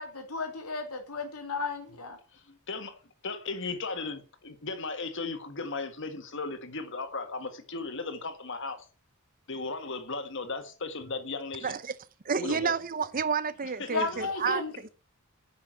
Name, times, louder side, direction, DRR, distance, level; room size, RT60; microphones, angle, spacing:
voice 1, 0.0-2.2 13.9-14.9, left 3 dB, 90° left, 2.9 m, -34 dB
voice 2, 2.3-3.0 3.2-8.8 9.5-11.8 12.3-12.7 13.8-14.1 14.5-14.6, left 3 dB, 60° left, 1.7 m, -36 dB
voice 3, 11.6-12.0 12.2-14.9, right 5 dB, 40° right, 0.7 m, -30 dB
9.8 x 6.2 x 7.5 m
head